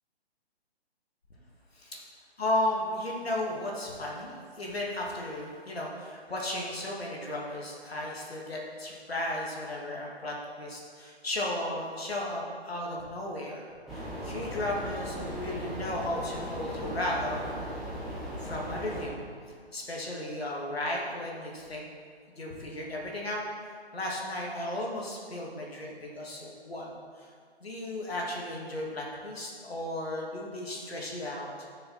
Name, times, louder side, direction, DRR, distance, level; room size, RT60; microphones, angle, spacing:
voice 1, 2.4-17.4 18.4-19.2 19.7-21.9 22.3-23.4 23.9-27.3 27.6-31.5, left 1 dB, 65° left, -2 dB, 2.4 m, -34 dB
sound 1, 13.9-19.1, equal, ahead, 0.6 m, -37 dB
12.5 x 6.8 x 4.1 m, 2.1 s
figure-of-eight pair, 140°, 33 cm